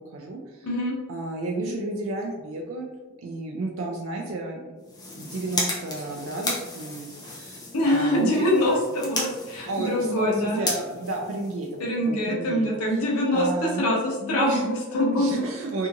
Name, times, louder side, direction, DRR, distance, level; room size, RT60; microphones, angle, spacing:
voice 1, 0.0-0.7 1.1-2.9 3.2-4.6 5.1-8.5 9.7-11.7 12.0-13.0 13.3-13.9 14.2-14.7 15.1-15.9, right 2 dB, 60° right, 0 dB, 0.3 m, -32 dB
voice 2, 0.6-0.9 7.7-10.6 11.8-15.3, left 1 dB, 85° left, -3 dB, 0.8 m, -24 dB
sound 1, 4.8-12.1, left 2 dB, 20° left, 0.4 m, -34 dB
2.8 x 2.4 x 2.5 m, 1.2 s
head